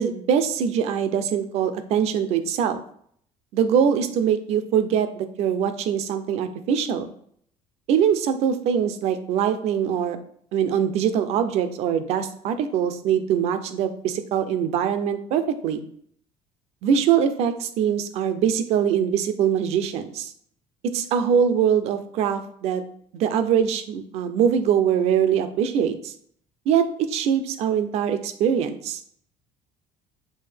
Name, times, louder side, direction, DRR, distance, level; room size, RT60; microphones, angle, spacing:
voice 1, 0.0-2.8 3.5-7.1 7.9-10.2 10.5-15.8 16.8-20.3 20.8-22.8 23.1-26.1 26.7-29.0, right 8 dB, 60° right, 10 dB, 0.5 m, -23 dB
5.4 x 2.6 x 3.3 m, 0.63 s
cardioid pair, 170°, 13 cm